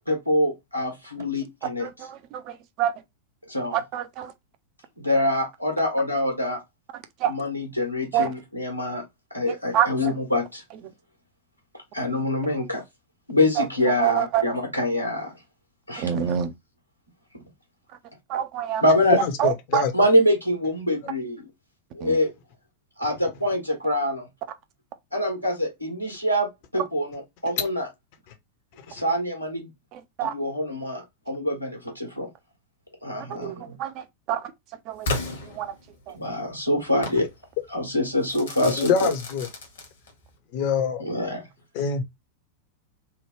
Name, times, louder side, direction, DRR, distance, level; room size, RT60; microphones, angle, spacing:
voice 1, 0.1-1.9 3.5-3.8 5.0-6.6 7.3-9.0 9.3-10.6 11.9-12.8 13.3-15.3 15.9-16.3 18.8-19.2 19.9-21.5 21.9-22.3 23.0-24.2 25.1-27.9 28.9-29.7 30.2-32.3 33.0-33.7 36.1-37.3 37.7-39.1 41.0-41.4, left 1 dB, 90° left, 1.3 m, -25 dB
voice 2, 1.8-2.9 3.7-4.3 7.2-7.3 8.1-8.3 9.5-9.9 13.6-14.4 16.0-16.5 18.3-18.8 19.4-19.8 22.0-22.2 29.9-30.3 33.4-33.9 34.3-34.5 34.9-35.1 35.6-35.7 36.1-36.2, right 10 dB, 40° right, 0.5 m, -26 dB
voice 3, 19.1-19.9 28.9-29.0 38.6-39.5 40.5-41.0 41.7-42.0, left 6 dB, 45° left, 0.7 m, -25 dB
Crackle / Fireworks, 35.0-36.2 37.0-37.3 38.2-40.2, left 2 dB, 65° left, 1.1 m, -33 dB
3.3 x 2.2 x 3.1 m
figure-of-eight pair, 90°, 0 cm